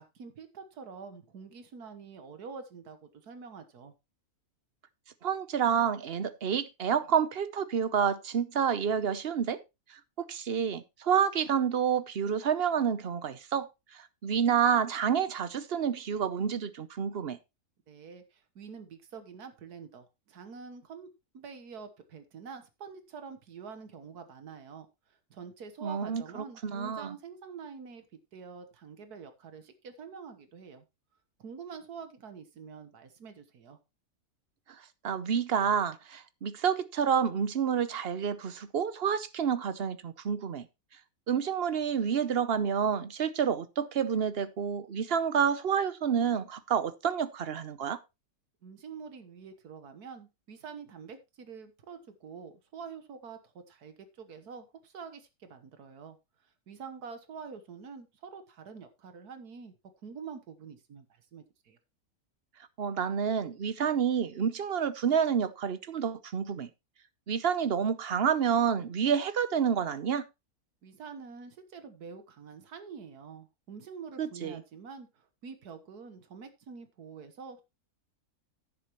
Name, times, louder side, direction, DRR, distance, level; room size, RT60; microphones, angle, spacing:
voice 1, 0.0-3.9 17.9-21.1 21.3-28.0 28.3-30.9 31.4-33.8 48.6-56.2 56.4-59.7 60.0-61.8 70.8-77.6, right 6 dB, 85° right, 1.8 m, -46 dB
voice 2, 5.2-9.6 9.9-17.4 25.8-26.2 26.6-27.1 35.0-40.7 41.3-48.0 62.8-66.7 67.3-70.2 74.2-74.6, right 7 dB, 50° right, 0.9 m, -29 dB
11.0 x 9.9 x 3.0 m
omnidirectional pair, 1.6 m